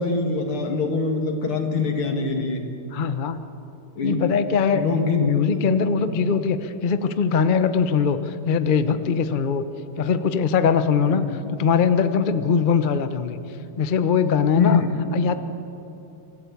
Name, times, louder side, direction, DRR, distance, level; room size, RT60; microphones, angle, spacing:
voice 1, 0.0-2.6 4.0-4.4 4.7-6.0 11.0-11.3 14.6-15.4, left 4 dB, 90° left, 4 dB, 2.9 m, -24 dB
voice 2, 2.9-3.4 4.0-4.8 5.1-9.7 10.0-13.4 13.8-14.8 15.1-15.4, left 6 dB, 60° left, 10 dB, 0.5 m, -21 dB
26.0 x 14.5 x 8.4 m, 2.9 s
omnidirectional pair, 2.3 m